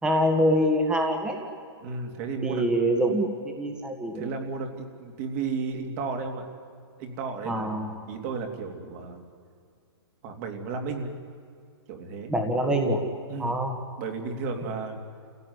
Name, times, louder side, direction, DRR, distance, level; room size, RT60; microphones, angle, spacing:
voice 1, 0.0-1.4 2.4-4.3 7.4-7.9 12.3-13.0 13.4-13.8, equal, 5° right, 3 dB, 1.8 m, -25 dB
voice 2, 1.8-2.7 4.1-6.4 7.0-9.2 10.2-11.1 11.9-12.3 13.3-13.5 14.0-15.0, right 4 dB, 35° right, 4 dB, 3.1 m, -33 dB
29.0 x 16.5 x 9.7 m, 2.2 s
hypercardioid pair, 160°, 14 cm